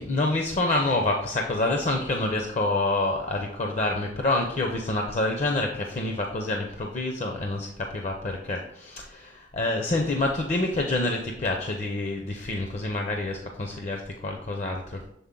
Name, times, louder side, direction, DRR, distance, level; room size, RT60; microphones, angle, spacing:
voice 1, 0.0-15.0, left 2 dB, 40° left, 2 dB, 0.6 m, -27 dB
7.0 x 3.9 x 3.7 m, 0.76 s
head